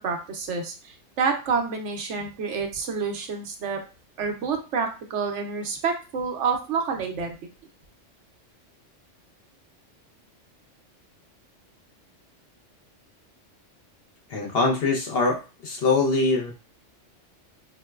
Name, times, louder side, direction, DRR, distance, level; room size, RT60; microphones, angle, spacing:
voice 1, 0.0-3.8 4.2-7.3, right 5 dB, 70° right, 3 dB, 0.9 m, -28 dB
voice 2, 14.3-16.5, left 3 dB, 55° left, -1 dB, 0.9 m, -23 dB
4.4 x 2.1 x 2.3 m, 0.32 s
omnidirectional pair, 1.3 m